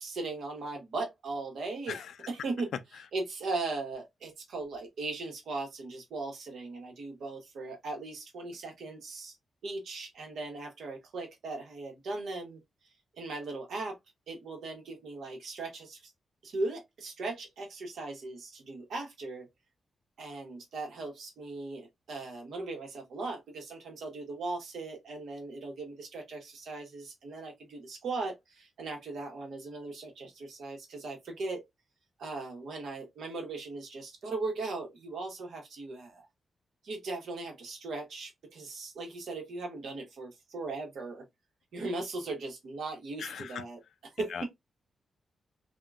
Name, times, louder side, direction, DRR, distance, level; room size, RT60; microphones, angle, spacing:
voice 1, 0.0-9.3 9.6-12.6 13.2-14.0 14.3-16.1 16.4-19.5 20.2-31.7 32.2-36.3 36.8-41.2 41.7-43.8 44.2-44.5, right 3 dB, 65° right, 1.0 m, -38 dB
voice 2, 43.2-43.6 44.3-44.4, left 7 dB, 70° left, 0.3 m, -38 dB
3.6 x 2.2 x 2.3 m
wide cardioid pair, 165°, 0 cm